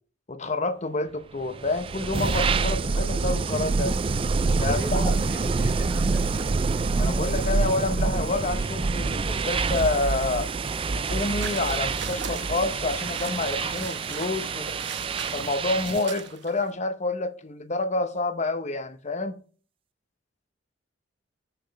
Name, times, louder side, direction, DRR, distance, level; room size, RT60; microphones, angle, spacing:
voice 1, 0.3-4.0 4.6-5.0 7.0-10.5 10.9-14.7 15.3-19.4, left 2 dB, 35° left, 0.8 m, -28 dB
sound 1, 1.5-16.2, right 4 dB, 25° right, 0.3 m, -26 dB
voice 2, 4.6-6.5, equal, 10° right, 0.8 m, -39 dB
sound 2, 11.1-16.7, right 6 dB, 60° right, 0.9 m, -40 dB
6.7 x 6.1 x 4.7 m
head